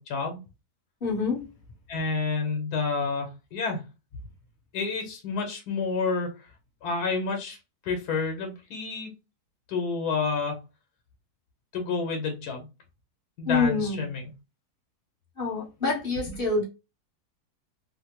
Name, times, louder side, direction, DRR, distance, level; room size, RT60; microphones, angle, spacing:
voice 1, 0.1-0.4 1.9-3.8 4.7-6.3 6.8-7.6 7.8-9.1 9.7-10.6 11.7-12.7 13.4-14.3, left 4 dB, 80° left, 3 dB, 1.4 m, -29 dB
voice 2, 1.0-1.4 13.4-14.1 15.4-16.6, left 4 dB, 40° left, -4 dB, 1.3 m, -26 dB
3.4 x 2.1 x 2.9 m, 0.28 s
omnidirectional pair, 1.6 m